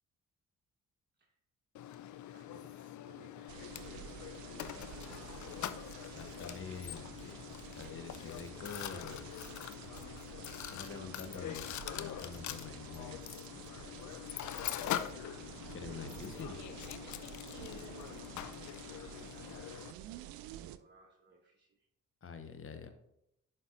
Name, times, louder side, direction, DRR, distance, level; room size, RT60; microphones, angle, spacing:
Mechanisms, 1.7-19.9, left 12 dB, 50° left, 0.5 m, -43 dB
voice 1, 2.3-5.5 8.3-9.1 10.7-11.7 16.0-16.9 18.0-21.9, right 3 dB, 30° right, 1 dB, 1.2 m, -62 dB
sound 1, 3.5-20.8, right 13 dB, 65° right, 0.5 m, -50 dB
voice 2, 5.9-7.5 7.7-9.2 10.4-11.7 11.9-13.2 15.7-16.5 22.2-22.9, left 5 dB, 35° left, 8 dB, 1.0 m, -46 dB
11.0 x 4.2 x 2.5 m, 0.80 s
hypercardioid pair, 40°, 38 cm